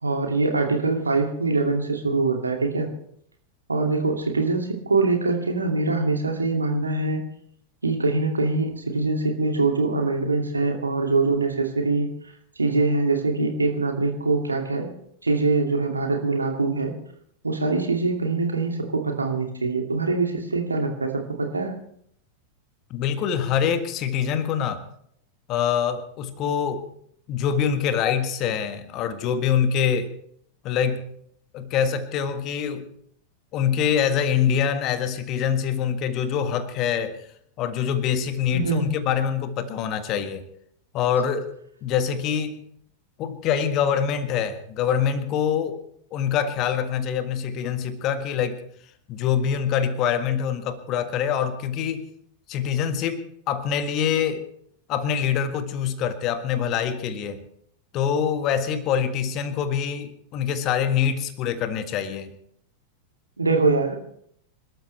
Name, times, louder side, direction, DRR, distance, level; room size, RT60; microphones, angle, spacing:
voice 1, 0.0-2.9 3.7-7.2 7.8-12.1 12.6-14.9 15.2-16.9 17.4-21.7 38.5-38.8 63.4-64.0, right 3 dB, 80° right, 3 dB, 2.4 m, -23 dB
voice 2, 22.9-24.8 25.5-26.9 27.3-30.1 30.6-31.0 31.5-32.9 33.5-37.3 37.6-40.4 40.9-41.5 41.8-42.6 43.2-45.8 46.1-48.6 49.1-52.1 52.5-54.4 54.9-57.4 57.9-62.3, left 8 dB, 35° left, 9 dB, 1.7 m, -25 dB
26.5 x 13.0 x 3.3 m, 0.67 s
figure-of-eight pair, 90°, 0 cm